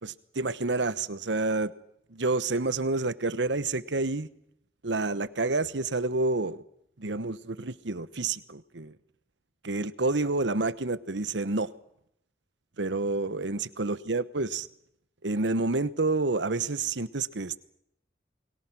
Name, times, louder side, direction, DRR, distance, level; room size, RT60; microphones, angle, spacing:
voice 1, 0.0-1.7 2.1-4.3 4.8-6.6 7.0-8.9 9.6-11.7 12.8-14.7 15.2-17.6, right 3 dB, 80° right, 15 dB, 1.1 m, -29 dB
29.5 x 22.0 x 6.1 m, 0.75 s
head